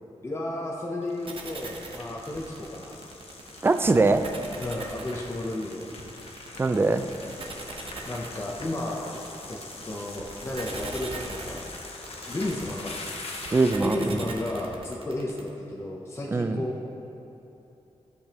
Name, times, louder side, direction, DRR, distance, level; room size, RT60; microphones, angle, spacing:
voice 1, 0.2-3.0 4.6-5.8 8.1-9.0 9.5-9.6 9.8-11.7 12.3-12.9 13.8-16.8, left 1 dB, 20° left, -2 dB, 0.7 m, -33 dB
sound 1, 1.0-14.0, left 3 dB, 60° left, 0.9 m, -43 dB
sound 2, 1.3-15.5, right 3 dB, 50° right, 0.9 m, -40 dB
voice 2, 3.6-4.3 6.6-7.0 13.5-14.2 16.3-16.6, right 3 dB, 20° right, 8 dB, 0.3 m, -22 dB
15.0 x 6.8 x 2.9 m, 2.9 s
wide cardioid pair, 170°, 12 cm